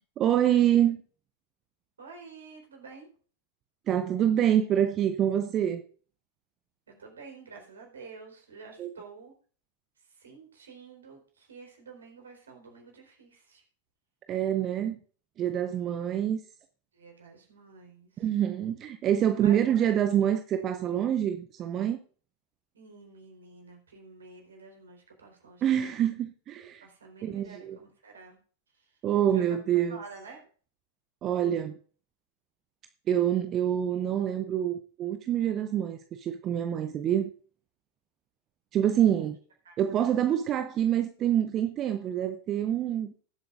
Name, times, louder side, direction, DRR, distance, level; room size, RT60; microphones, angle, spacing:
voice 1, 0.2-1.0 3.9-5.8 8.8-8.9 14.3-15.0 15.4-16.4 18.2-22.0 25.6-26.9 27.2-27.8 29.0-30.0 31.2-31.8 33.1-37.3 38.7-39.4 39.8-43.1, right 10 dB, 30° right, 0.8 m, -26 dB
voice 2, 2.0-3.1 6.9-9.3 10.2-13.6 16.9-18.2 19.3-19.6 22.7-26.0 26.8-28.4 29.3-29.4 29.9-30.4 39.2-39.3 39.6-39.7, right 4 dB, 70° right, 4.1 m, -49 dB
19.5 x 7.9 x 2.5 m
figure-of-eight pair, 90°, 0 cm